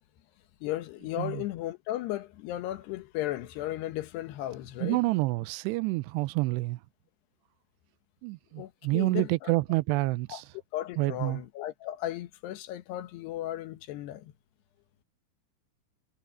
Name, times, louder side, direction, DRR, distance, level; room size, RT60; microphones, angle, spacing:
voice 1, 0.6-5.0 8.6-9.5 10.3-10.4 10.7-14.3, left 14 dB, 80° left, 3.2 m, -35 dB
voice 2, 4.8-6.8 8.2-10.5 11.0-11.4, right 22 dB, 90° right, 2.8 m, -28 dB
omnidirectional pair, 4.8 m